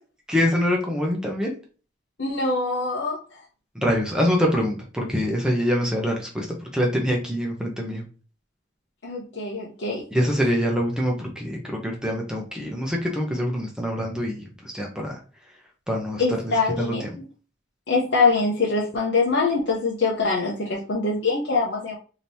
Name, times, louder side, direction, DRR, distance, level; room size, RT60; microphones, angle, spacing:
voice 1, 0.3-1.5 3.7-8.0 10.1-15.2 15.9-17.1, equal, 5° right, 0 dB, 0.8 m, -25 dB
voice 2, 2.2-3.2 9.0-10.1 16.2-17.2 17.9-22.0, left 3 dB, 65° left, -4 dB, 0.9 m, -24 dB
5.1 x 2.9 x 2.7 m, 0.37 s
head